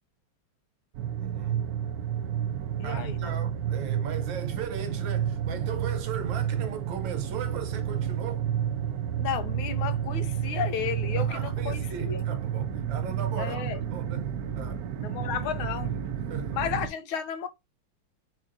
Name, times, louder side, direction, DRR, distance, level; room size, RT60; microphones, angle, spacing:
sound 1, 0.9-16.9, right 9 dB, 90° right, 0.8 m, -30 dB
voice 1, 1.2-1.6 2.8-8.5 11.2-14.3 14.5-14.9 16.1-16.6, right 7 dB, 65° right, 1.4 m, -37 dB
voice 2, 2.8-3.3 9.2-12.2 13.4-13.8 15.0-16.0 16.5-17.5, left 8 dB, 75° left, 1.5 m, -33 dB
4.5 x 4.3 x 2.5 m
omnidirectional pair, 2.4 m